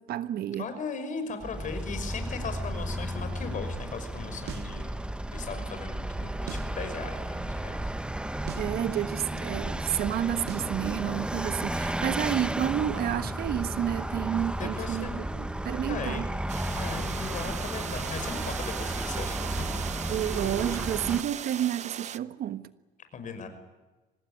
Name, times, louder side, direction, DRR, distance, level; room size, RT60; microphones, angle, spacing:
voice 1, 0.0-0.7 8.6-16.3 20.1-22.7, right 11 dB, 65° right, 1.3 m, -30 dB
voice 2, 0.6-5.0 5.3-7.9 14.6-15.2 15.9-16.2 16.7-19.8 23.1-23.5, left 5 dB, 50° left, 5.9 m, -38 dB
Vehicle, 1.4-21.2, right 1 dB, 5° right, 1.1 m, -33 dB
sound 1, 4.5-4.8 6.5-6.8 8.5-8.8 10.5-10.8, right 8 dB, 80° right, 2.0 m, -40 dB
sound 2, 16.5-22.2, right 9 dB, 45° right, 0.8 m, -38 dB
25.0 x 19.5 x 10.0 m
cardioid pair, 110°, 17 cm